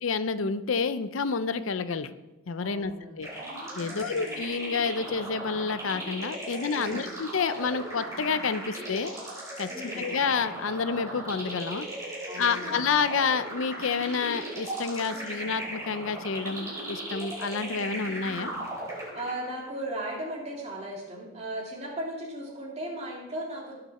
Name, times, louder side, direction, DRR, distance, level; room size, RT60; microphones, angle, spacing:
voice 1, 0.0-2.1 2.5-2.9 3.2-3.3 3.8-9.1 9.6-9.7 10.0-11.9 12.4-18.5, left 5 dB, 80° left, 12 dB, 0.6 m, -29 dB
voice 2, 2.6-3.3 3.8-4.2 6.4-7.0 9.7-10.1 12.2-12.9 18.3-18.7 19.1-23.8, right 1 dB, 30° right, -2 dB, 2.7 m, -37 dB
sound 1, 3.2-19.6, right 1 dB, 15° right, 3.5 m, -37 dB
18.5 x 6.8 x 4.2 m, 1.1 s
head